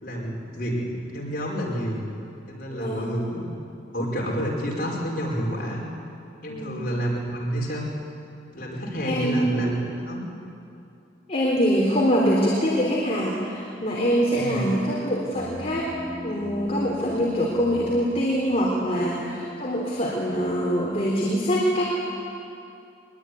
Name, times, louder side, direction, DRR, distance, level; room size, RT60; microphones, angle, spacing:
voice 1, 0.0-2.0 2.5-3.5 3.9-5.8 6.4-7.9 8.5-9.8 10.0-10.3 14.3-14.6, equal, 50° left, -2 dB, 5.2 m, -29 dB
voice 2, 2.7-3.2 6.5-6.8 9.0-9.5 11.3-15.9 16.2-21.8, equal, 35° left, -4 dB, 3.8 m, -24 dB
sound 1, 15.3-19.0, left 1 dB, 15° left, 5.7 m, -38 dB
23.0 x 22.5 x 9.8 m, 2.7 s
head